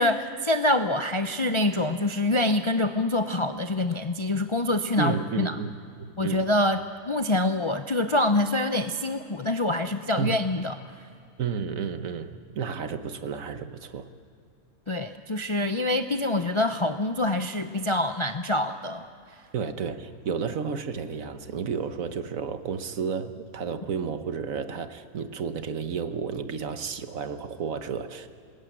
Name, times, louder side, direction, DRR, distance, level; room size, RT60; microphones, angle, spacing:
voice 1, 0.0-5.6 6.2-6.8 7.1-10.8 14.9-19.1, left 1 dB, 40° left, 7 dB, 0.4 m, -25 dB
voice 2, 5.0-6.5 10.2-10.4 11.4-14.1 19.5-28.3, right 6 dB, 70° right, 9 dB, 1.5 m, -32 dB
20.5 x 20.0 x 9.0 m, 2.5 s
omnidirectional pair, 1.5 m